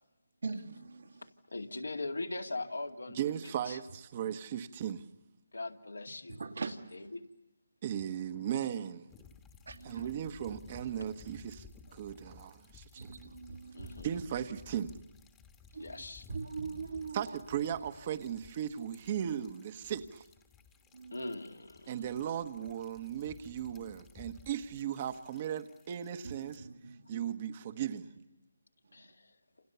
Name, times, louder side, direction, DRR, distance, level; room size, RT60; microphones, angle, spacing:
voice 1, 0.4-1.3 6.4-7.1 9.7-10.1 13.0-14.2 15.7-17.4 20.9-21.3 26.2-27.3 28.9-29.1, right 4 dB, 65° right, 2.5 m, -42 dB
voice 2, 1.5-3.8 5.5-6.4 6.9-7.3 13.7-14.1 15.8-16.2 21.1-21.9 28.9-29.4, left 2 dB, 80° left, 2.3 m, -40 dB
voice 3, 3.1-5.1 7.8-9.1 9.8-13.1 14.0-15.0 17.1-20.2 21.9-26.7 27.1-28.1, right 9 dB, 35° right, 1.3 m, -37 dB
sound 1, 9.1-26.6, left 6 dB, 10° left, 1.4 m, -57 dB
28.5 x 28.0 x 7.0 m
figure-of-eight pair, 155°, 0 cm